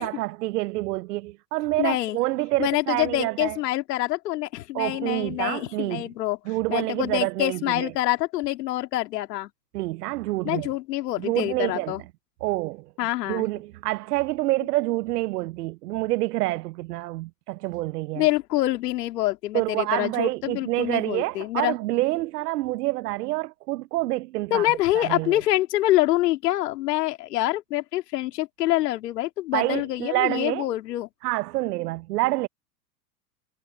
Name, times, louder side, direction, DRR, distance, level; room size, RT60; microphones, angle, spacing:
voice 1, 0.0-3.6 4.7-6.1 6.5-7.9 9.7-10.7 11.2-11.9 12.4-12.8 13.3-18.2 19.5-24.7 24.9-25.4 29.5-30.7 31.2-32.5, right 18 dB, 70° right, 0.7 m, -27 dB
voice 2, 1.8-2.2 2.6-6.4 6.7-9.5 10.4-12.0 13.0-13.5 18.1-21.7 24.5-31.1, left 16 dB, 70° left, 2.5 m, -26 dB
hypercardioid pair, 125°, 49 cm